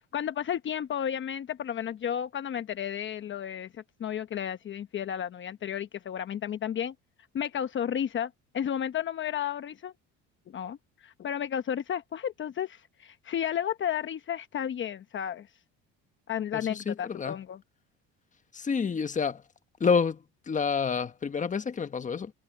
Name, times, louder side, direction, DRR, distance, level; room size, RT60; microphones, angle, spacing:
voice 1, 0.1-6.9 7.3-9.9 10.5-15.5 16.3-17.6, left 9 dB, 40° left, 1.0 m, -33 dB
voice 2, 16.5-17.3 18.5-19.4 19.8-22.3, left 5 dB, 25° left, 1.3 m, -28 dB
cardioid pair, 105°, 29 cm